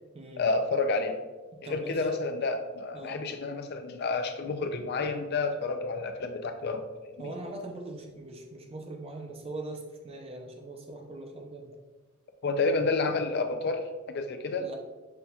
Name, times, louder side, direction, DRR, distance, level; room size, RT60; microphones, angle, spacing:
voice 1, 0.4-1.2 1.6-7.3 12.4-14.7, left 3 dB, 50° left, 6 dB, 0.4 m, -30 dB
voice 2, 1.6-2.1 2.9-3.2 7.2-11.8 14.6-14.8, right 2 dB, 30° right, 2 dB, 0.5 m, -41 dB
5.6 x 2.7 x 2.3 m, 1.3 s
head